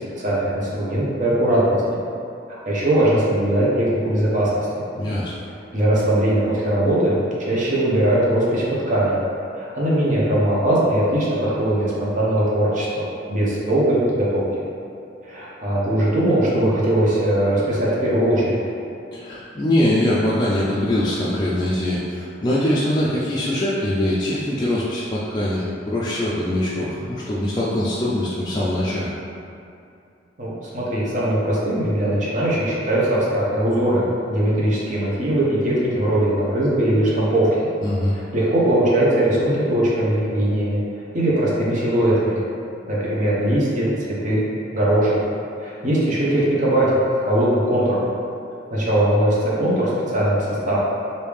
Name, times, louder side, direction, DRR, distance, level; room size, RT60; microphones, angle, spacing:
voice 1, 0.1-2.0 2.7-4.8 5.7-9.2 9.5-14.4 15.2-18.6 30.4-34.0 34.3-37.7 38.1-40.8 41.1-42.4 42.9-44.4 44.7-45.2 45.6-48.1 48.7-50.8, right 1 dB, 40° right, -6 dB, 0.8 m, -20 dB
voice 2, 5.0-5.3 19.1-29.1 37.8-38.2, left 1 dB, 20° left, -8 dB, 0.3 m, -22 dB
3.2 x 2.7 x 3.3 m, 2.6 s
head